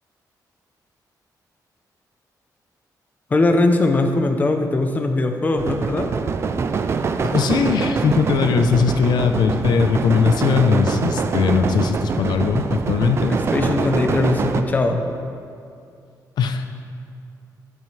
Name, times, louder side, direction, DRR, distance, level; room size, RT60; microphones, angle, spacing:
voice 1, 3.3-6.1 13.3-15.0, left 2 dB, 25° left, 5 dB, 0.7 m, -20 dB
sound 1, 5.6-14.6, right 5 dB, 35° right, 0.5 m, -24 dB
voice 2, 7.2-14.3 16.4-16.7, left 5 dB, 80° left, 7 dB, 0.7 m, -20 dB
20.5 x 7.2 x 3.3 m, 2.4 s
wide cardioid pair, 170°, 7 cm